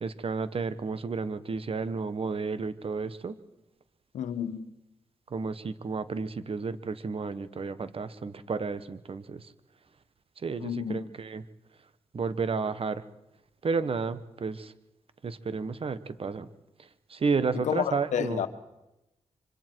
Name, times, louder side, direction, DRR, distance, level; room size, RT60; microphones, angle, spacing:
voice 1, 0.0-3.4 5.3-9.4 10.4-11.4 12.1-13.0 13.6-14.7 15.2-16.5 17.1-18.4, right 4 dB, 50° right, 1.3 m, -32 dB
voice 2, 4.1-4.7 10.6-11.0 17.5-18.5, left 8 dB, 85° left, 1.3 m, -30 dB
26.0 x 24.5 x 4.7 m
cardioid pair, 55°, 12 cm